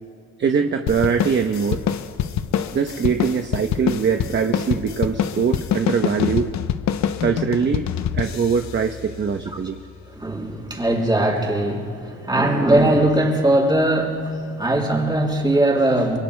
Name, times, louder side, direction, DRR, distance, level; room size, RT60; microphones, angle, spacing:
voice 1, 0.4-1.8 2.7-6.5 7.2-7.9 8.1-9.8, right 6 dB, 40° right, 5 dB, 0.8 m, -22 dB
sound 1, 0.9-9.7, left 9 dB, 65° left, 0.8 m, -26 dB
voice 2, 10.1-16.2, right 1 dB, 15° right, 0 dB, 4.5 m, -20 dB
27.5 x 22.5 x 2.2 m, 2.5 s
cardioid pair, 90°, 30 cm